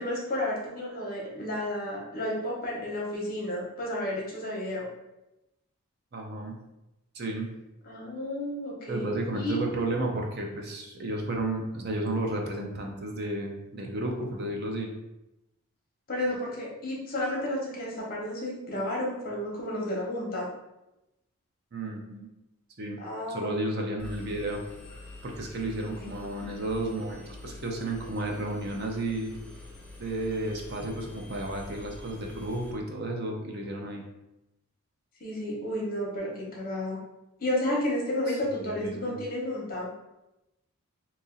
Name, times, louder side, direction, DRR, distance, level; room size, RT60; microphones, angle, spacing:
voice 1, 0.0-4.9 7.9-9.6 16.1-20.5 23.0-23.6 26.0-26.4 35.2-37.0 37.4-39.9, left 1 dB, 40° left, -3 dB, 1.0 m, -32 dB
voice 2, 6.1-6.6 7.1-7.5 8.9-14.9 21.7-22.3 22.8-23.0 23.3-24.6 24.9-29.3 30.0-34.0 38.3-39.2, right 1 dB, 45° right, 1 dB, 0.5 m, -33 dB
Engine, 24.0-32.7, left 2 dB, 5° left, 0.4 m, -46 dB
2.9 x 2.7 x 3.7 m, 0.92 s
head